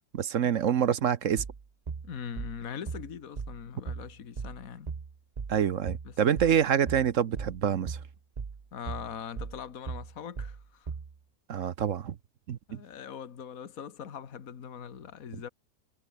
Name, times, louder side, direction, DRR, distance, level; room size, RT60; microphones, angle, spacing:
voice 1, 0.1-1.4 5.5-8.0 11.5-12.2 12.5-12.8, right 8 dB, 55° right, 1.1 m, -26 dB
sound 1, 1.4-11.2, right 5 dB, 30° right, 0.8 m, -38 dB
voice 2, 2.0-4.9 6.0-6.6 8.7-10.9 12.7-15.5, left 8 dB, 55° left, 1.9 m, -42 dB
omnidirectional pair, 1.8 m